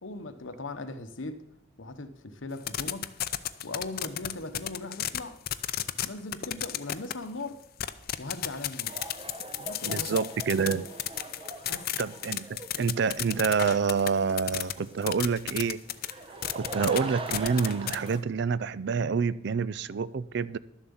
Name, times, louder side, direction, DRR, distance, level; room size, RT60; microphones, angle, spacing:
voice 1, 0.0-1.4 1.8-3.2 3.6-5.4 6.0-7.6 8.2-9.0 9.6-10.1 11.7-12.0, left 2 dB, 85° left, 1.0 m, -39 dB
sound 1, 2.6-5.2 5.5-6.1 6.3-7.1 7.8-14.7 15.0-16.1 16.4-17.0 17.3-18.1, left 12 dB, 50° left, 0.6 m, -32 dB
sound 2, 8.9-18.2, right 3 dB, 30° right, 0.9 m, -42 dB
voice 2, 9.8-10.9 12.0-15.8 16.5-20.6, right 5 dB, 60° right, 0.4 m, -27 dB
12.0 x 7.4 x 7.1 m
head